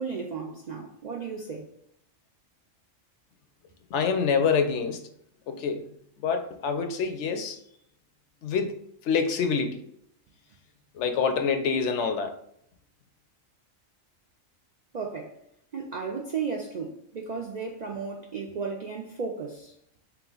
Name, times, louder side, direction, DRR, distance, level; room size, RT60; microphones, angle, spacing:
voice 1, 0.0-1.7 14.9-15.4 15.7-19.7, right 5 dB, 75° right, 0.4 m, -34 dB
voice 2, 3.9-5.0 5.5-5.8 6.2-7.6 8.4-8.8 9.0-9.8 10.9-12.3, left 5 dB, 70° left, 0.8 m, -26 dB
3.5 x 3.0 x 3.8 m
omnidirectional pair, 1.4 m